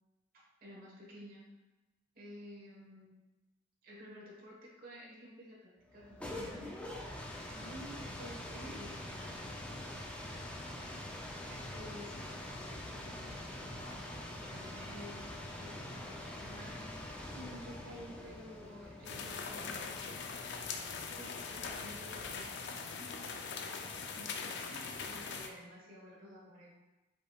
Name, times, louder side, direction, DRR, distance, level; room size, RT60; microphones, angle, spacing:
voice 1, 0.3-1.5 2.1-3.1 3.8-6.8 8.6-9.5 11.4-15.3 15.5-17.0 18.2-20.5 21.1-23.2 23.6-26.7, equal, 50° right, -5 dB, 1.2 m, -53 dB
sound 1, 5.9-22.6, left 1 dB, 5° left, 0.4 m, -45 dB
voice 2, 7.5-8.7 17.3-18.2, right 1 dB, 80° right, -4 dB, 1.2 m, -48 dB
sound 2, 19.0-25.5, left 5 dB, 60° left, 0.5 m, -41 dB
5.2 x 4.4 x 2.3 m, 1.1 s
head